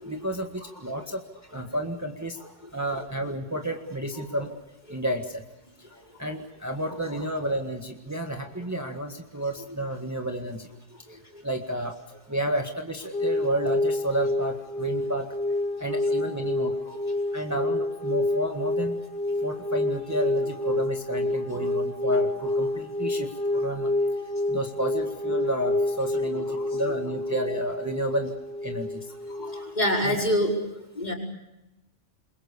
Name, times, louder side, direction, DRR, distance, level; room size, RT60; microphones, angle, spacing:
voice 1, 0.0-1.2 1.5-2.4 2.7-4.5 4.9-5.4 5.8-5.9 6.2-10.7 11.1-12.0 12.3-15.3 15.8-16.8 17.3-19.0 19.4-23.9 24.5-28.3 28.6-29.1 30.0-30.2, right 1 dB, 15° right, 3 dB, 1.7 m, -31 dB
sound 1, 13.1-30.0, left 1 dB, 55° left, 4.5 m, -28 dB
voice 2, 29.4-30.5 31.0-31.1, equal, 35° left, 0 dB, 5.2 m, -26 dB
28.0 x 22.5 x 6.9 m, 0.96 s
omnidirectional pair, 1.3 m